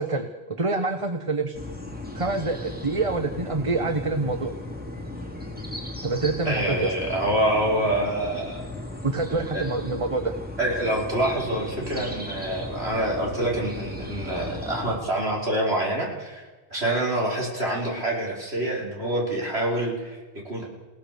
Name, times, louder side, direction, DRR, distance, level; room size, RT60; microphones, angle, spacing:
voice 1, 0.0-1.6 2.1-4.5 6.0-6.9 9.0-10.3, right 3 dB, 30° right, 6 dB, 1.2 m, -26 dB
sound 1, 1.5-15.0, left 2 dB, 10° right, 3.4 m, -36 dB
voice 2, 6.5-8.6 9.5-9.6 10.6-20.7, right 1 dB, 80° right, -2 dB, 5.3 m, -26 dB
29.5 x 17.5 x 6.9 m, 1.3 s
omnidirectional pair, 1.1 m